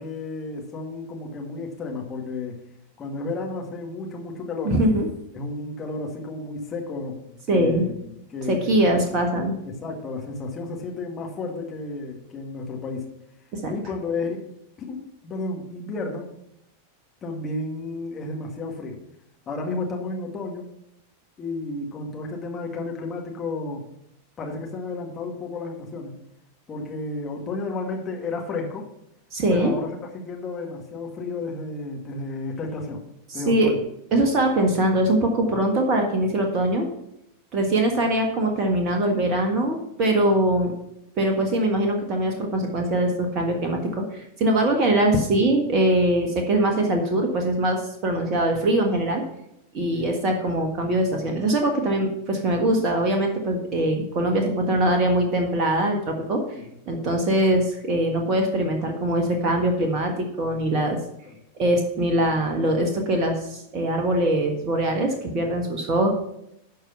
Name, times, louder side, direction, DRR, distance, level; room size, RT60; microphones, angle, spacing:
voice 1, 0.0-2.6 3.0-4.8 5.3-8.0 8.3-9.0 9.6-13.0 13.7-14.5 14.8-16.3 17.2-19.0 19.5-20.7 21.4-23.8 24.4-26.2 26.7-28.8 29.5-33.0 33.3-33.8 49.9-50.1 56.5-56.7 61.3-61.4, left 3 dB, 25° left, 0 dB, 2.1 m, -32 dB
voice 2, 4.6-5.1 7.5-7.8 8.5-9.6 13.5-13.7 29.3-29.7 33.4-33.7 34.1-36.9 37.5-40.7 41.2-49.2 49.7-56.4 56.9-61.0 61.6-66.1, right 1 dB, 35° right, 3 dB, 1.5 m, -22 dB
12.0 x 4.7 x 5.8 m, 0.79 s
figure-of-eight pair, 90°, 0 cm